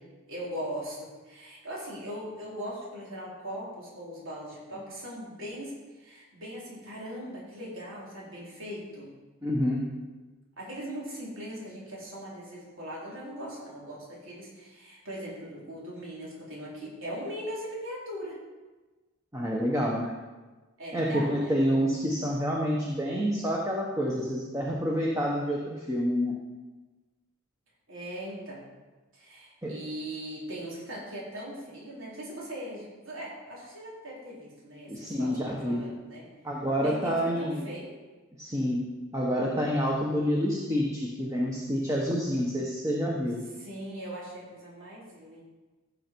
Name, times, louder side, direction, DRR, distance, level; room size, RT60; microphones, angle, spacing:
voice 1, 0.3-9.1 10.6-18.4 20.8-21.6 27.9-28.6 29.1-36.3 36.8-38.0 43.6-45.4, equal, 70° right, -5 dB, 3.9 m, -40 dB
voice 2, 9.4-9.9 19.3-20.1 20.9-26.4 29.6-29.7 34.9-35.8 36.4-37.6 38.4-43.4, equal, 15° right, -2 dB, 1.1 m, -28 dB
15.5 x 6.8 x 4.6 m, 1.2 s
head